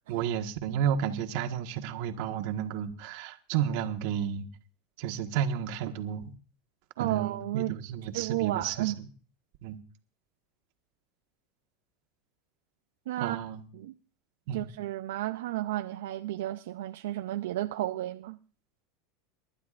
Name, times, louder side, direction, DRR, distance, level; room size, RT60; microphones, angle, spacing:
voice 1, 0.1-4.5 5.0-6.3 7.0-8.9 9.6-9.8 13.2-13.6 14.5-14.7, right 9 dB, 65° right, 1.5 m, -32 dB
voice 2, 7.0-7.8 8.1-9.0 13.1-13.4 13.7-13.9 14.5-18.4, right 15 dB, 85° right, 0.6 m, -32 dB
28.5 x 12.0 x 2.5 m
supercardioid pair, 135°, 0 cm